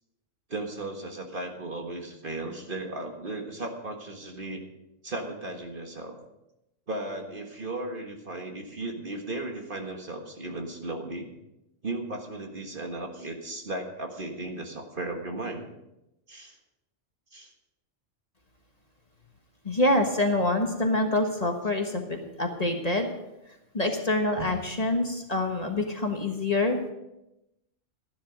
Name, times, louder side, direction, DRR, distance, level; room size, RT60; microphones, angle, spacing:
voice 1, 0.5-4.6 5.0-6.2 6.9-11.3 11.8-15.7 16.3-16.6 17.3-17.5, right 2 dB, 45° right, 3 dB, 1.7 m, -36 dB
voice 2, 19.6-23.1 23.7-26.9, left 2 dB, 30° left, 3 dB, 1.4 m, -26 dB
13.0 x 11.5 x 5.1 m, 0.90 s
omnidirectional pair, 1.3 m